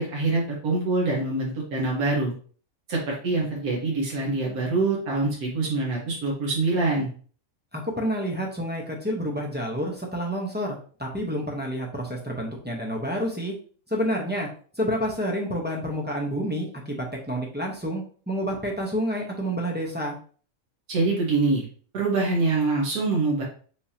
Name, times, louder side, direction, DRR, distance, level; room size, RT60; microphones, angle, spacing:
voice 1, 0.0-2.3 2.9-7.1 20.9-21.6 21.9-23.4, right 3 dB, 90° right, -3 dB, 1.8 m, -25 dB
voice 2, 7.7-13.5 13.9-14.5 14.8-20.2, equal, 10° right, -2 dB, 0.7 m, -29 dB
5.3 x 3.5 x 2.8 m, 0.43 s
omnidirectional pair, 1.5 m